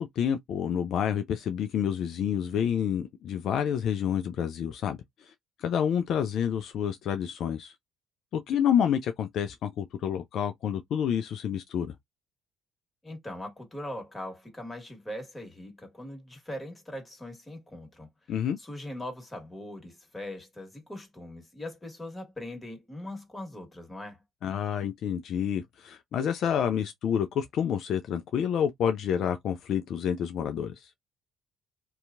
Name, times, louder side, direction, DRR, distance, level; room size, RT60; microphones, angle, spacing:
voice 1, 0.0-5.0 5.6-7.7 8.3-11.9 18.3-18.6 24.4-30.8, left 8 dB, 65° left, 0.3 m, -28 dB
voice 2, 13.0-24.2, left 1 dB, 20° left, 1.5 m, -41 dB
2.7 x 2.3 x 2.5 m
hypercardioid pair, 60°, 0 cm